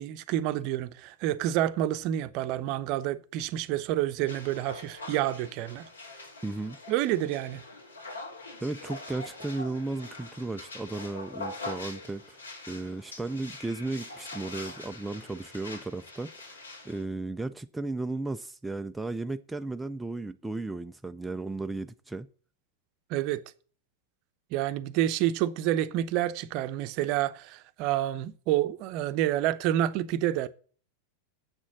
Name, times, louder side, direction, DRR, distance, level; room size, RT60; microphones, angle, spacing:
voice 1, 0.0-5.8 6.9-7.6 23.1-23.4 24.5-30.5, right 13 dB, 45° right, 0.7 m, -28 dB
sound 1, 4.3-17.0, left 2 dB, 75° left, 2.8 m, -43 dB
voice 2, 6.4-6.8 8.6-12.4 12.7-22.3, right 2 dB, 5° right, 0.4 m, -35 dB
8.1 x 6.3 x 7.1 m
figure-of-eight pair, 90°, 0 cm